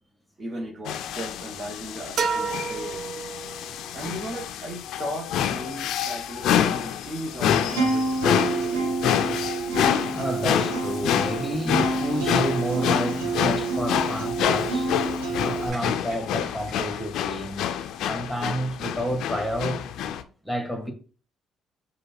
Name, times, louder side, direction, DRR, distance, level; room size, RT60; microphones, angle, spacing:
voice 1, 0.4-3.1 3.9-9.0 15.7-16.2 16.7-17.0, right 1 dB, 40° right, 1.0 m, -37 dB
sound 1, 0.9-20.2, left 9 dB, 70° left, 0.4 m, -27 dB
sound 2, 2.2-3.9, right 5 dB, 65° right, 0.5 m, -29 dB
Acoustic guitar, 7.7-15.7, right 3 dB, 90° right, 1.1 m, -28 dB
voice 2, 10.1-14.9 15.4-17.8 18.1-19.9 20.4-20.9, equal, ahead, 1.4 m, -30 dB
5.0 x 2.2 x 4.2 m
hypercardioid pair, 55°, 0 cm